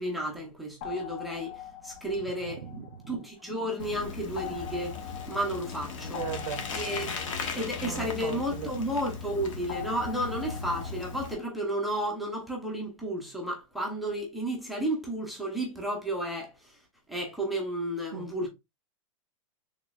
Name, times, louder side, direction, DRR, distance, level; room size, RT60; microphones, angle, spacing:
voice 1, 0.0-1.5 1.8-4.9 5.3-6.2 6.7-7.1 7.5-16.5 17.1-18.5, right 1 dB, ahead, 0.6 m, -32 dB
sound 1, 0.8-3.6 4.4-8.9 9.7-11.5, left 10 dB, 45° left, 0.6 m, -43 dB
voice 2, 2.6-3.0 6.1-6.7 7.8-8.7 18.1-18.3, right 9 dB, 80° right, 0.6 m, -37 dB
Bicycle, 3.8-11.3, left 5 dB, 75° left, 1.1 m, -38 dB
4.0 x 3.5 x 2.3 m
supercardioid pair, 175°, 17 cm